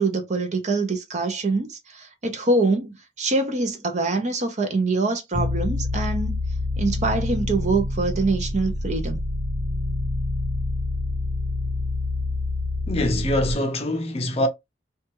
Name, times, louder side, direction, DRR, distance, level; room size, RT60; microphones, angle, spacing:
voice 1, 0.0-6.4 6.8-9.2, right 3 dB, 40° right, 0.6 m, -24 dB
sound 1, 5.3-13.5, left 2 dB, 70° right, 1.1 m, -27 dB
voice 2, 12.9-14.5, left 1 dB, 35° left, 0.5 m, -24 dB
2.8 x 2.3 x 2.9 m
head